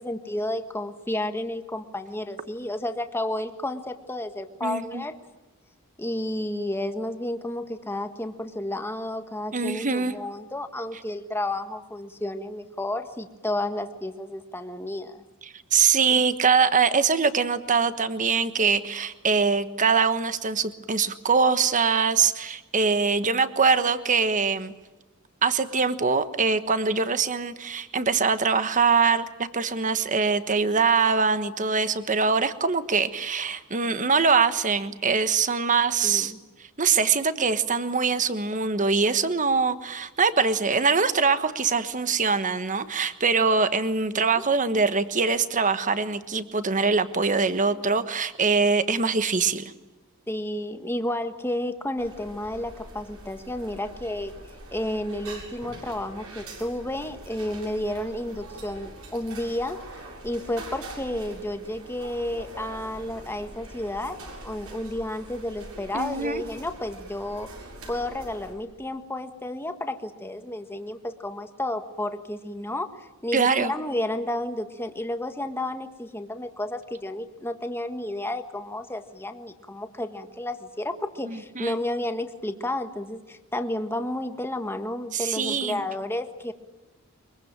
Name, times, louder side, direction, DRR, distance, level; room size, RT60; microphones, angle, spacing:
voice 1, 0.0-5.1 6.0-15.2 36.0-36.4 44.1-44.4 50.3-54.3 54.7-59.8 60.2-64.2 64.4-67.5 67.9-86.5, left 1 dB, 10° left, 8 dB, 1.6 m, -31 dB
voice 2, 4.6-5.0 9.5-10.2 15.4-24.7 25.4-36.3 36.6-49.7 65.9-66.4 73.3-73.7 81.2-81.8 85.1-85.8, right 5 dB, 35° right, 12 dB, 1.3 m, -23 dB
sound 1, 52.0-68.5, right 1 dB, 75° right, 7.6 m, -43 dB
23.5 x 22.5 x 9.0 m, 1.1 s
head